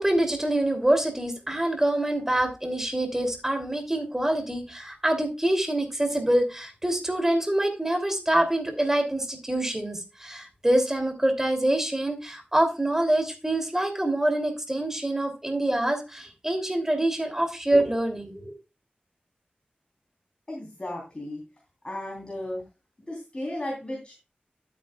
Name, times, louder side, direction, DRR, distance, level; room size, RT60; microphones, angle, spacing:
voice 1, 0.0-18.5, right 1 dB, 15° right, 4 dB, 2.7 m, -25 dB
voice 2, 20.5-21.4 21.8-22.6 23.1-24.1, left 1 dB, 30° left, -2 dB, 3.4 m, -34 dB
12.0 x 8.9 x 2.3 m, 0.27 s
wide cardioid pair, 80°, 3 cm